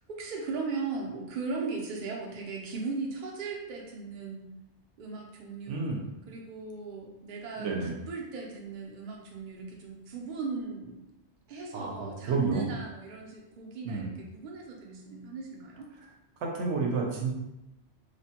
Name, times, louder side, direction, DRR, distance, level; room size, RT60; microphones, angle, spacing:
voice 1, 0.1-4.5 5.0-5.9 6.3-7.7 8.1-11.0 11.5-15.9, right 4 dB, 55° right, -1 dB, 0.6 m, -37 dB
voice 2, 5.7-6.0 7.6-7.9 11.7-12.7 13.8-14.1 16.0-16.1 16.4-17.3, right 4 dB, 80° right, 0 dB, 0.9 m, -30 dB
3.0 x 2.1 x 2.8 m, 0.92 s
omnidirectional pair, 1.2 m